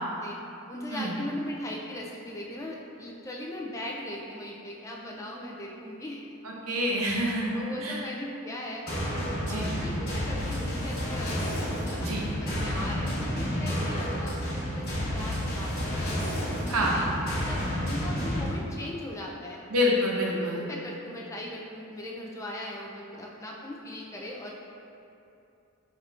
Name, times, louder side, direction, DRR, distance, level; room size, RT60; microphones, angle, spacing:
voice 1, 0.7-6.2 7.0-7.2 7.5-8.9 9.5-17.1 17.5-19.6 20.3-24.5, left 1 dB, 15° left, -2 dB, 0.3 m, -39 dB
voice 2, 6.4-8.0 9.4-9.8 12.0-12.3 16.7-17.1 19.7-20.6, left 1 dB, 85° right, -2 dB, 0.7 m, -27 dB
sound 1, 8.9-18.5, equal, 45° left, 1.1 m, -30 dB
5.7 x 3.5 x 2.4 m, 2.7 s
head